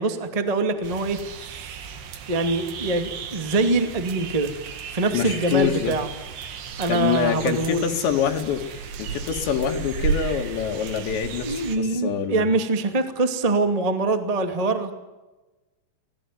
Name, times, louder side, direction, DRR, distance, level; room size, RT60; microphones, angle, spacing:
voice 1, 0.0-1.7 2.3-4.5 4.9-6.1 6.8-7.9 11.4-14.9, right 3 dB, 15° right, 8 dB, 1.1 m, -24 dB
sound 1, 0.8-11.8, right 6 dB, 70° right, 4.0 m, -34 dB
voice 2, 5.1-6.0 6.9-8.6 9.0-12.5, left 8 dB, 75° left, 4 dB, 4.4 m, -25 dB
26.5 x 20.0 x 9.5 m, 1.1 s
omnidirectional pair, 5.2 m